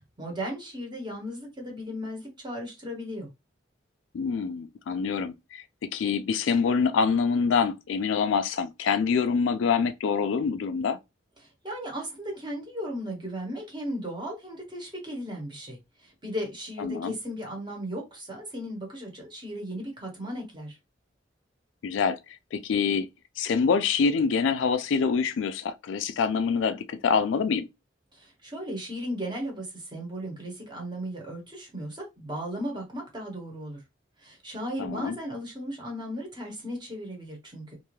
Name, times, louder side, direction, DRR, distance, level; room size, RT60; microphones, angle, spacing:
voice 1, 0.2-3.3 11.4-20.8 28.1-33.8 34.2-37.8, equal, 25° right, 1.0 m, -36 dB
voice 2, 4.1-5.6 5.9-11.0 16.8-17.1 21.8-22.2 22.5-23.1 23.4-27.7 34.8-35.2, left 5 dB, 80° left, 0.3 m, -25 dB
2.5 x 2.3 x 3.0 m
head